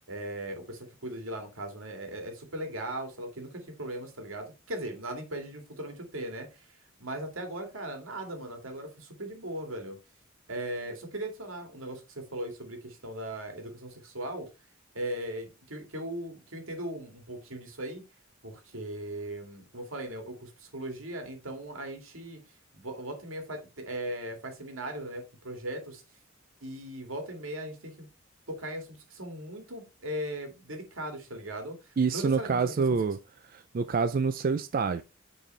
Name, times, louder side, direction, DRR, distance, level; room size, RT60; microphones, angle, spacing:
voice 1, 0.1-10.0 10.5-14.5 14.9-18.0 18.4-22.4 22.7-26.0 26.6-28.1 28.5-33.0, right 1 dB, 85° right, 2.2 m, -38 dB
voice 2, 32.0-33.2 33.5-35.0, right 5 dB, 45° right, 0.3 m, -27 dB
8.9 x 4.2 x 3.2 m
head